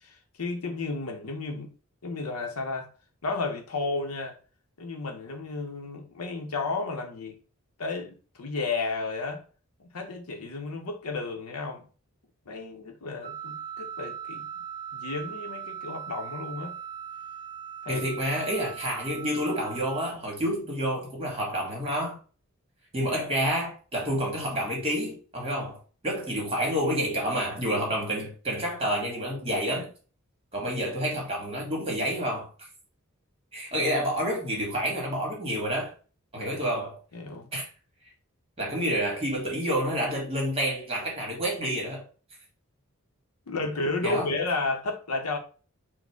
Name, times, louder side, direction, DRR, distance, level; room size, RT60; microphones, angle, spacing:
voice 1, 0.0-1.7 2.0-2.9 3.2-4.4 4.8-7.4 7.8-9.4 9.8-11.8 12.5-14.5 14.9-16.8 17.8-18.0 37.1-37.5 43.5-45.4, left 3 dB, 80° left, 0.7 m, -32 dB
Wind instrument woodwind instrument, 13.2-20.1, right 9 dB, 25° left, 1.6 m, -39 dB
voice 2, 17.9-22.2 22.9-29.9 30.5-32.5 33.5-35.9 36.3-37.0 37.5-37.6 38.6-42.1 44.0-44.3, equal, 25° right, 1.5 m, -29 dB
4.2 x 2.1 x 4.4 m
head